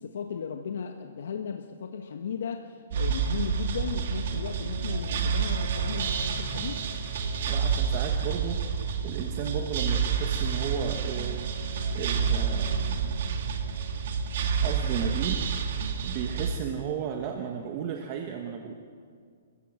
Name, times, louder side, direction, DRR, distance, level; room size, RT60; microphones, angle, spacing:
voice 1, 0.0-6.8, left 7 dB, 70° left, 4 dB, 1.5 m, -36 dB
sound 1, 2.9-16.6, right 6 dB, 55° right, 2.1 m, -29 dB
voice 2, 7.5-8.6 9.0-11.4 11.9-13.2 14.6-15.5 16.0-18.7, right 8 dB, 30° right, 3 dB, 1.4 m, -34 dB
29.0 x 15.0 x 7.7 m, 2.1 s
hypercardioid pair, 170°, 0 cm